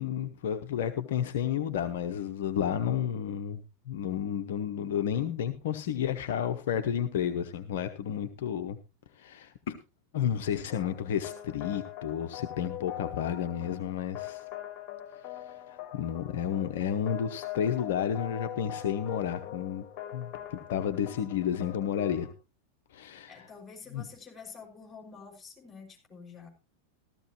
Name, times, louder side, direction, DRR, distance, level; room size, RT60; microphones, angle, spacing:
voice 1, 0.0-8.8 9.1-9.8 10.1-14.4 15.2-19.9 20.1-22.3 22.9-23.5 23.9-24.1, left 9 dB, 55° left, 7 dB, 0.8 m, -31 dB
sound 1, 10.7-22.3, left 12 dB, 35° left, 1.8 m, -42 dB
voice 2, 23.3-26.5, left 5 dB, 15° left, 1 dB, 5.6 m, -48 dB
14.5 x 14.0 x 3.0 m, 0.29 s
figure-of-eight pair, 90°, 0 cm